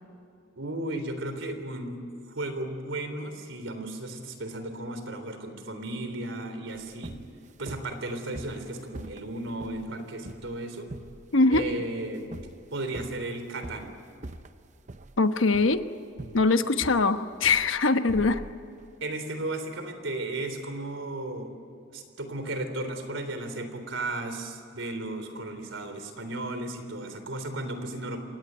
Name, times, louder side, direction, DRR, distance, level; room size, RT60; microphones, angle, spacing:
voice 1, 0.6-2.0 2.3-7.2 7.6-10.9 11.5-12.3 12.7-13.9 19.0-21.6 21.9-28.2, right 2 dB, 80° right, 8 dB, 3.6 m, -35 dB
sound 1, 6.7-19.0, right 2 dB, 35° right, 0.7 m, -44 dB
voice 2, 11.3-11.7 15.2-15.8 16.3-18.4, left 3 dB, 85° left, 9 dB, 1.1 m, -22 dB
26.5 x 18.5 x 9.4 m, 2.6 s
head